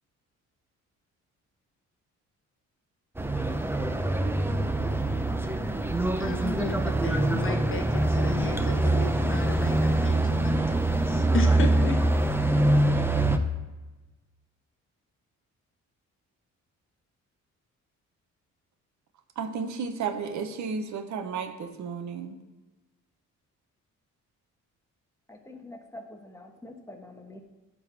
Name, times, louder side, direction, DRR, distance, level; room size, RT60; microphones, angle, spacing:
sound 1, 3.2-13.4, right 2 dB, 5° right, 0.7 m, -24 dB
voice 1, 6.2-12.1, left 5 dB, 45° left, 1.0 m, -35 dB
voice 2, 19.4-22.4, right 5 dB, 70° right, 1.0 m, -33 dB
voice 3, 25.3-27.4, left 1 dB, 10° left, 1.3 m, -45 dB
10.5 x 4.0 x 5.9 m
cardioid pair, 90°, 30 cm